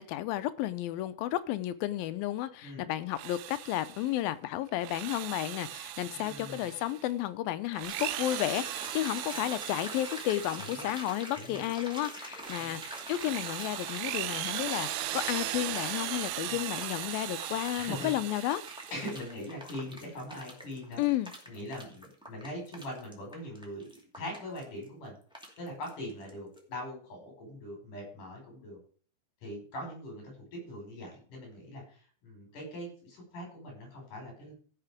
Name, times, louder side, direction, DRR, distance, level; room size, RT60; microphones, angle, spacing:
voice 1, 0.0-18.6 21.0-21.3, left 14 dB, 80° left, 2.4 m, -32 dB
Drill, 3.0-4.2 4.7-7.1 7.7-11.4 11.9-19.3, right 15 dB, 80° right, 2.4 m, -38 dB
voice 2, 6.1-6.7 10.6-10.9 11.3-11.6 12.6-12.8 16.5-16.6 17.8-18.1 18.9-21.0 21.5-25.2 25.6-28.8 29.4-34.5, left 1 dB, 55° left, 6.8 m, -42 dB
sound 1, 7.8-26.3 26.6-26.7, equal, ahead, 1.5 m, -46 dB
15.5 x 5.9 x 5.0 m
omnidirectional pair, 4.3 m